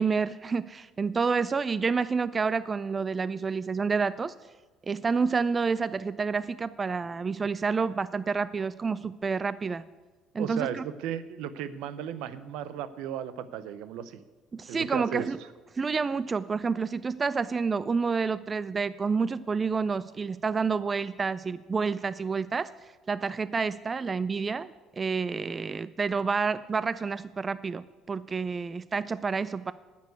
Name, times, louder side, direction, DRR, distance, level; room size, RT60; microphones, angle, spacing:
voice 1, 0.0-4.3 4.9-9.8 10.3-10.8 14.5-15.4 15.7-22.7 23.1-29.7, right 5 dB, 25° right, 16 dB, 0.3 m, -29 dB
voice 2, 10.4-14.2 14.7-15.3, right 10 dB, 80° right, 13 dB, 0.7 m, -35 dB
9.5 x 6.9 x 8.1 m, 1.3 s
cardioid pair, 115°, 0 cm